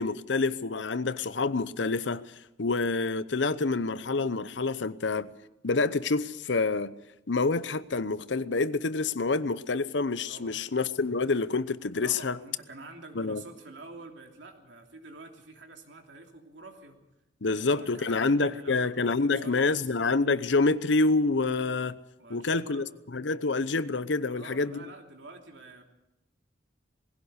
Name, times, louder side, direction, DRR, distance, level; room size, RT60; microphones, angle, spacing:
voice 1, 0.0-2.2 2.6-5.3 5.6-6.9 7.3-12.4 13.2-13.4 17.4-22.0 22.3-22.8 23.1-24.8, left 3 dB, 75° left, 0.8 m, -27 dB
voice 2, 12.0-17.0 17.4-19.9 22.2-22.9 24.3-25.8, right 3 dB, 75° right, 3.0 m, -47 dB
20.0 x 16.5 x 8.1 m
head